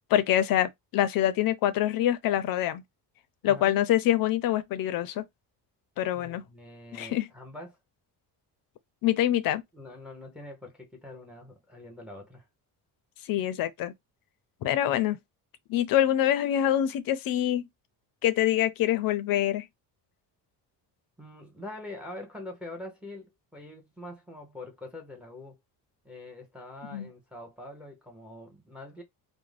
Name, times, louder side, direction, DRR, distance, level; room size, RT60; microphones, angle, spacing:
voice 1, 0.1-2.8 3.4-5.2 6.0-6.4 6.9-7.3 9.0-9.6 13.3-13.9 14.6-15.2 15.7-17.7 18.2-19.7 26.9-27.1, left 12 dB, 55° left, 0.5 m, -25 dB
voice 2, 6.1-7.8 9.7-12.5 21.2-25.6 26.0-29.0, left 1 dB, ahead, 0.6 m, -44 dB
2.4 x 2.1 x 3.2 m
cardioid pair, 165°, 41 cm